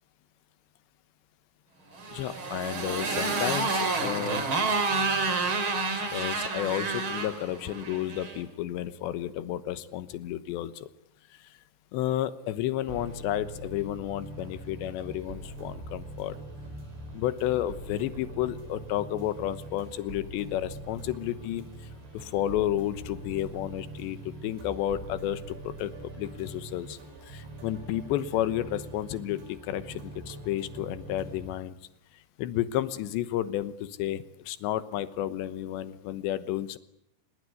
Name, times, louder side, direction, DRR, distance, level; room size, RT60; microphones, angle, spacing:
Motorcycle, 1.9-8.4, right 3 dB, 35° right, 2.7 m, -29 dB
voice 1, 2.1-4.5 6.1-10.9 11.9-16.4 17.1-21.7 22.1-27.0 27.3-31.8 32.4-36.8, left 12 dB, 75° left, 13 dB, 3.2 m, -31 dB
sound 1, 12.8-31.5, right 2 dB, 80° right, 7.2 m, -43 dB
25.5 x 21.0 x 9.5 m, 0.80 s
omnidirectional pair, 5.2 m